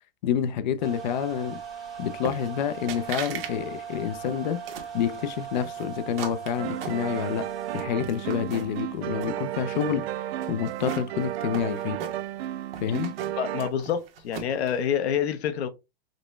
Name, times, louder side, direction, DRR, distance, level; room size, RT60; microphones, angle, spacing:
voice 1, 0.2-1.6 2.0-4.6 4.9-12.0 12.8-13.1, left 9 dB, 50° left, 0.4 m, -28 dB
sound 1, 0.8-7.8, right 7 dB, ahead, 0.9 m, -39 dB
sound 2, 2.2-2.6 2.9-3.5 3.9-5.0 5.5-7.4 7.8-8.8 9.1-9.9 10.4-12.4 12.7-14.7, right 7 dB, 65° right, 1.1 m, -38 dB
sound 3, 6.6-13.7, right 12 dB, 80° right, 0.5 m, -33 dB
voice 2, 13.4-15.7, left 8 dB, 90° left, 0.8 m, -27 dB
5.1 x 2.1 x 3.2 m
supercardioid pair, 170°, 31 cm